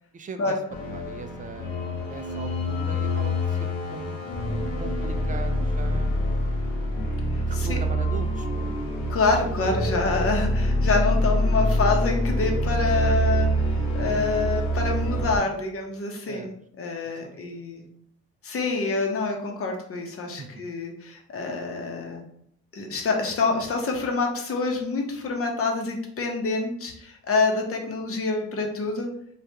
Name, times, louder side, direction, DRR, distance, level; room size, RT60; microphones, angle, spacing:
voice 1, 0.1-0.6 0.8-4.2 4.8-6.2 7.5-8.9 16.3-16.5 17.0-17.4 17.7-17.9 20.4-20.6, right 4 dB, 25° right, 8 dB, 0.4 m, -40 dB
sound 1, 0.7-15.4, equal, 90° left, 0.8 m, -26 dB
voice 2, 7.3-7.8 9.1-17.8 18.4-22.2 22.7-29.1, left 3 dB, 45° left, 2 dB, 0.8 m, -27 dB
3.3 x 2.4 x 2.8 m, 0.68 s
cardioid pair, 90°, 30 cm